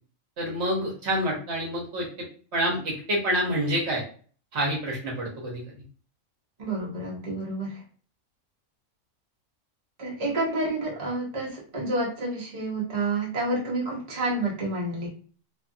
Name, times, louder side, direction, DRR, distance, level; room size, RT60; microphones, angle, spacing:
voice 1, 0.4-2.1 2.5-4.0 4.5-5.6, equal, 60° right, -2 dB, 1.1 m, -27 dB
voice 2, 6.6-7.8 10.0-15.1, right 2 dB, 35° right, -3 dB, 0.7 m, -29 dB
2.7 x 2.4 x 2.5 m, 0.42 s
omnidirectional pair, 1.4 m